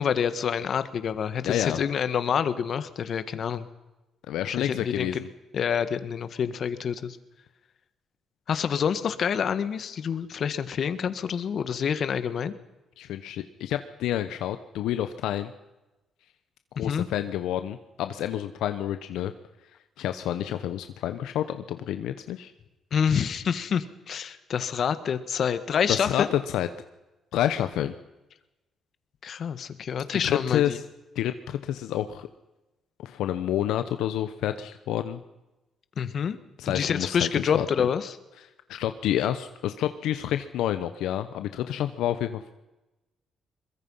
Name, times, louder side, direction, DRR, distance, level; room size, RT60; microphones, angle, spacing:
voice 1, 0.0-3.7 4.5-5.2 5.5-7.2 8.5-12.5 16.7-17.1 22.9-26.3 29.2-30.8 36.0-36.4 36.6-38.2, left 7 dB, 60° left, 12 dB, 1.7 m, -27 dB
voice 2, 1.4-1.8 4.3-5.3 13.0-15.5 16.8-19.3 20.0-22.5 25.9-26.7 27.3-27.9 30.2-30.8 31.1-32.3 33.0-35.2 36.6-37.9 38.7-42.5, left 11 dB, 85° left, 10 dB, 0.9 m, -29 dB
23.0 x 21.5 x 5.7 m, 1.0 s
cardioid pair, 90°, 0 cm